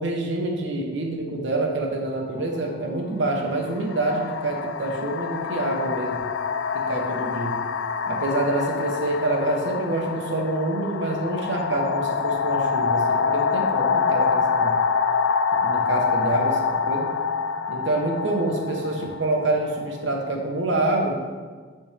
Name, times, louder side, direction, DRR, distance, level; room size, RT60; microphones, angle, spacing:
voice 1, 0.0-6.3 6.7-7.6 8.1-14.8 15.6-17.1 17.7-21.2, right 2 dB, 75° right, 1 dB, 1.0 m, -26 dB
sound 1, 2.4-2.6 3.5-20.2, left 5 dB, 70° left, 0.3 m, -26 dB
10.0 x 3.4 x 3.4 m, 1.5 s
head